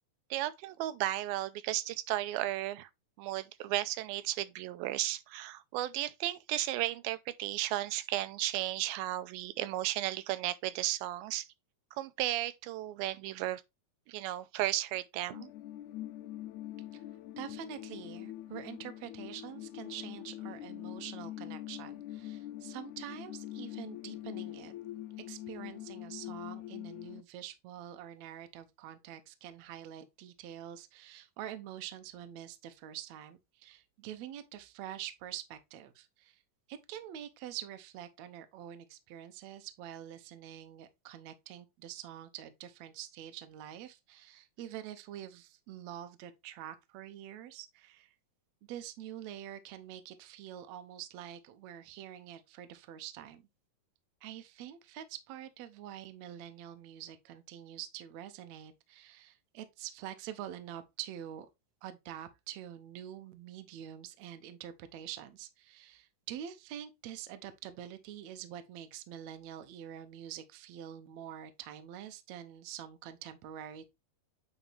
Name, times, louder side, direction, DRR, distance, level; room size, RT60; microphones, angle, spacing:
voice 1, 0.3-2.9 3.2-11.5 12.0-13.6 14.1-15.5, right 15 dB, 90° right, 2.4 m, -34 dB
sound 1, 15.3-27.2, left 14 dB, 90° left, 1.6 m, -44 dB
voice 2, 17.4-24.7 25.3-36.4 36.7-48.1 48.6-53.5 54.2-61.5 61.8-73.9, right 11 dB, 70° right, 1.7 m, -46 dB
8.8 x 4.0 x 3.3 m
omnidirectional pair, 4.1 m